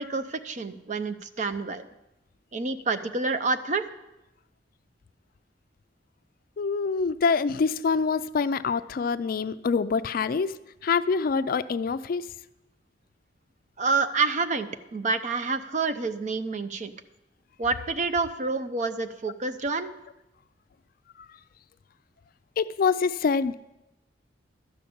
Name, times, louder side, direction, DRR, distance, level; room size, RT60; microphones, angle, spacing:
voice 1, 0.0-1.9 2.5-3.8 13.8-16.9 17.6-19.9, right 4 dB, 45° right, 10 dB, 0.6 m, -28 dB
voice 2, 6.6-10.6 10.8-12.2 22.6-23.5, left 5 dB, 55° left, 14 dB, 0.4 m, -25 dB
12.5 x 5.8 x 8.5 m, 0.96 s
head